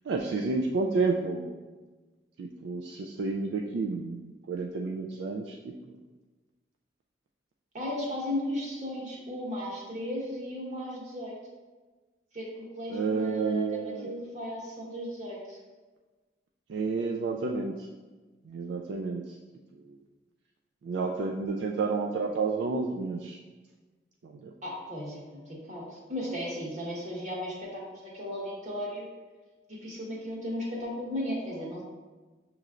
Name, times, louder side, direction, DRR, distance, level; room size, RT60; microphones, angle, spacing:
voice 1, 0.1-1.6 2.4-5.6 5.9-6.0 12.9-14.1 16.7-17.7 18.5-19.2 19.9-20.0 20.8-23.4 24.2-24.5, right 4 dB, 70° right, 1 dB, 0.3 m, -30 dB
voice 2, 7.7-11.3 12.3-15.6 24.6-29.1 29.7-31.8, left 1 dB, 40° right, -4 dB, 1.3 m, -36 dB
6.6 x 3.0 x 2.4 m, 1.3 s
head